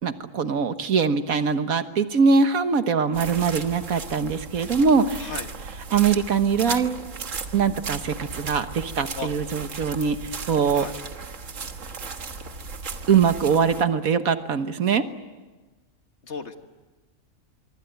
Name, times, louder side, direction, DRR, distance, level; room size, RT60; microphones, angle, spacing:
voice 1, 0.0-5.3 5.9-7.0 7.5-10.9 13.1-15.1, right 6 dB, 85° right, 9 dB, 1.7 m, -22 dB
sound 1, 3.1-13.8, right 4 dB, 65° right, 1.7 m, -36 dB
voice 2, 5.2-5.5 9.2-9.3 10.7-10.9 16.2-16.6, left 4 dB, 55° left, 7 dB, 1.9 m, -34 dB
25.0 x 24.0 x 9.3 m, 1.2 s
omnidirectional pair, 1.4 m